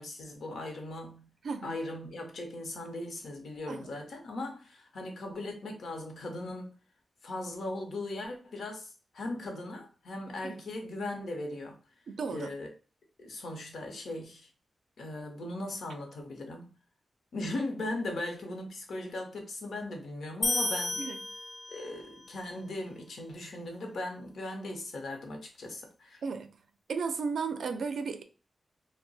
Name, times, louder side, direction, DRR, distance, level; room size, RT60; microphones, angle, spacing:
voice 1, 0.0-1.3 1.6-6.7 7.2-11.8 12.3-12.7 13.2-14.5 15.0-16.7 17.3-21.0 21.7-26.2, left 2 dB, 80° left, 0.8 m, -38 dB
voice 2, 1.4-1.8 3.7-3.9 10.4-10.6 12.1-12.5 21.0-21.2 26.2-26.5 26.9-28.2, right 5 dB, 80° right, 0.4 m, -34 dB
sound 1, 20.4-22.0, left 2 dB, 40° left, 0.6 m, -32 dB
2.7 x 2.1 x 4.0 m
wide cardioid pair, 160°, 0 cm